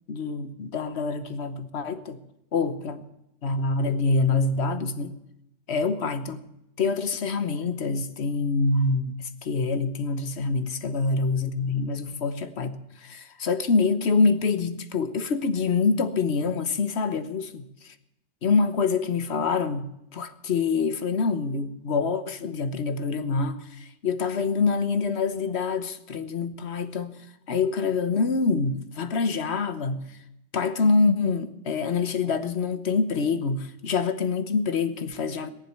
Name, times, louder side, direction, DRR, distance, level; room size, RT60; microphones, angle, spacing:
voice 1, 0.1-2.2 2.5-3.0 3.4-5.1 5.7-6.4 6.8-17.9 18.4-27.1 27.5-30.0 30.5-35.5, left 4 dB, 65° left, 11 dB, 1.3 m, -26 dB
17.5 x 7.6 x 9.7 m, 0.82 s
omnidirectional pair, 1.2 m